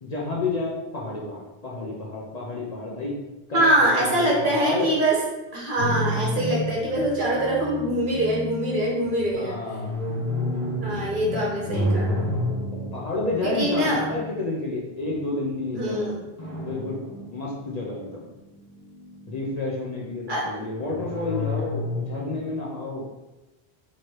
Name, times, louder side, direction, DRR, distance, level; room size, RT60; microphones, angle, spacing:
voice 1, 0.0-3.1 3.5-3.6 3.9-4.9 9.3-10.0 12.7-16.1 16.6-18.3 19.3-23.1, left 2 dB, 45° left, -3 dB, 0.7 m, -30 dB
voice 2, 3.5-5.2 5.5-9.6 10.8-12.3 13.4-14.1 15.7-16.1 20.3-20.5, right 1 dB, 55° right, -3 dB, 1.1 m, -23 dB
sound 1, 5.8-15.1 16.4-18.0 18.4-19.5 20.8-22.5, left 1 dB, 15° right, 1.3 m, -31 dB
3.1 x 3.0 x 4.3 m, 1.0 s
omnidirectional pair, 1.0 m